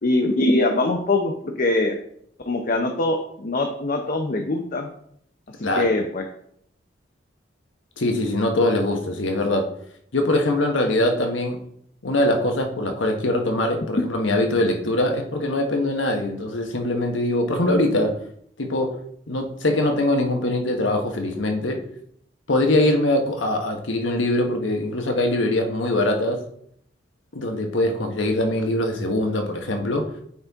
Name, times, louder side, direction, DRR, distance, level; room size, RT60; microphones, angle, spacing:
voice 1, 0.0-2.0 2.5-4.9 5.6-6.3, left 2 dB, 45° left, 3 dB, 0.7 m, -22 dB
voice 2, 8.0-9.7 10.1-11.6 12.0-18.2 18.6-19.0 19.3-21.8 22.5-26.4 27.3-30.1, left 1 dB, 85° left, 3 dB, 1.2 m, -22 dB
8.6 x 4.3 x 3.5 m, 0.68 s
head